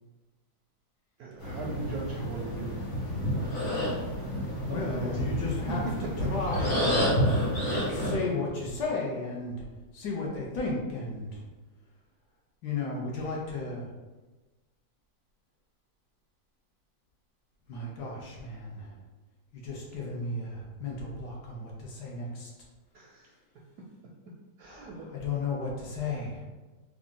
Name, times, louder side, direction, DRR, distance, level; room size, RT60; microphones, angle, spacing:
voice 1, 1.2-2.9 3.1-3.4 4.7-6.3 22.9-23.3 24.6-25.1, right 4 dB, 70° right, -2 dB, 0.9 m, -38 dB
sound 1, 1.4-8.1, equal, 35° left, 1.1 m, -29 dB
voice 2, 4.6-5.9 6.2-7.2 7.9-9.7 9.9-11.4 12.6-13.9 17.7-18.9 19.5-22.5 24.6-26.4, left 3 dB, 70° left, -2 dB, 1.2 m, -34 dB
3.6 x 2.4 x 3.7 m, 1.2 s
omnidirectional pair, 2.0 m